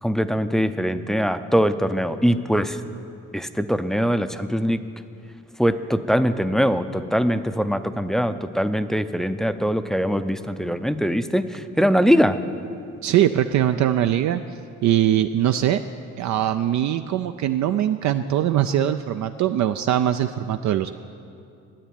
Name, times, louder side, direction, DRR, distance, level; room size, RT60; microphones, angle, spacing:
voice 1, 0.0-2.8 3.3-4.8 5.6-12.4, equal, ahead, 10 dB, 0.4 m, -22 dB
voice 2, 13.0-14.4 14.8-15.8 16.2-20.9, right 11 dB, 65° right, 9 dB, 0.4 m, -21 dB
10.0 x 8.5 x 9.1 m, 2.6 s
cardioid pair, 90°, 30 cm